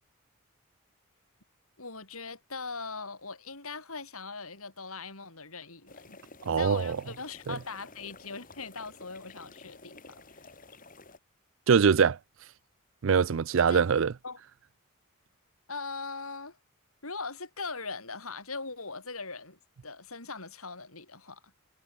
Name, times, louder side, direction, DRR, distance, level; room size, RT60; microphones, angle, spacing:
voice 1, 1.8-6.2 6.6-10.5 13.7-13.8 14.2-14.4 15.7-16.6 17.0-21.5, left 4 dB, 85° left, 7.7 m, -40 dB
sound 1, 5.9-11.2, left 3 dB, 40° left, 6.5 m, -52 dB
voice 2, 6.4-7.0 7.5-7.6 11.7-12.2 13.0-14.1, right 6 dB, 65° right, 0.4 m, -23 dB
head